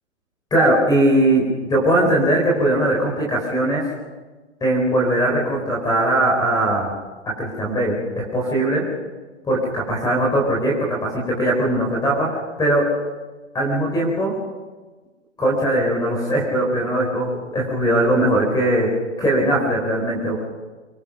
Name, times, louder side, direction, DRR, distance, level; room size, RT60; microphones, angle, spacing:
voice 1, 0.5-3.8 4.6-6.9 7.3-8.8 9.4-12.9 13.5-14.3 15.4-18.9 19.2-20.4, right 1 dB, 10° left, -1 dB, 4.2 m, -20 dB
24.5 x 18.5 x 5.9 m, 1.3 s
hypercardioid pair, 135°, 37 cm